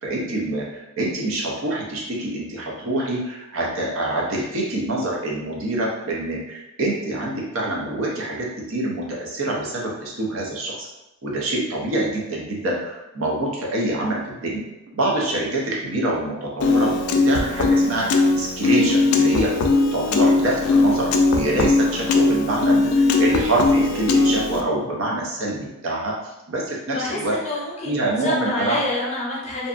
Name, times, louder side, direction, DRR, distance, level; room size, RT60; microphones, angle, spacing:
voice 1, 0.0-0.7 1.0-10.9 11.2-14.6 14.9-16.9 17.2-19.5 19.9-26.2 26.5-27.4 27.8-28.8, right 1 dB, 65° right, -2 dB, 0.6 m, -25 dB
Piano, 16.6-24.6, left 3 dB, 75° left, 0.3 m, -19 dB
voice 2, 21.9-22.3 26.9-29.7, left 2 dB, 30° left, -5 dB, 0.6 m, -28 dB
2.6 x 2.3 x 2.5 m, 0.95 s
head